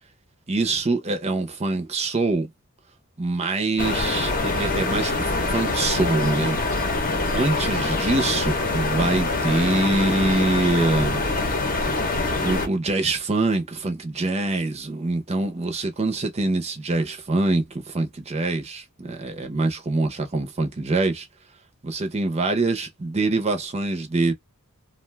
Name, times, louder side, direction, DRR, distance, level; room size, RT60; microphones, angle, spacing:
voice 1, 0.5-2.5 3.2-6.6 7.3-11.2 12.4-21.3 21.8-24.3, right 2 dB, 30° right, 0.6 m, -24 dB
sound 1, 3.8-12.7, left 3 dB, 40° left, 0.8 m, -24 dB
2.5 x 2.2 x 3.2 m
head